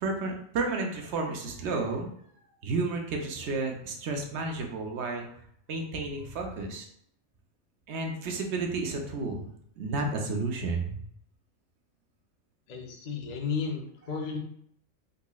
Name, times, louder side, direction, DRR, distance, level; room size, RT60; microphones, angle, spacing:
voice 1, 0.0-2.1 2.6-5.3 5.7-6.9 7.9-9.5 9.8-11.0, right 3 dB, 65° right, 2 dB, 0.9 m, -31 dB
voice 2, 12.7-14.4, left 5 dB, 55° left, 1 dB, 0.4 m, -33 dB
4.0 x 2.9 x 2.3 m, 0.67 s
omnidirectional pair, 1.4 m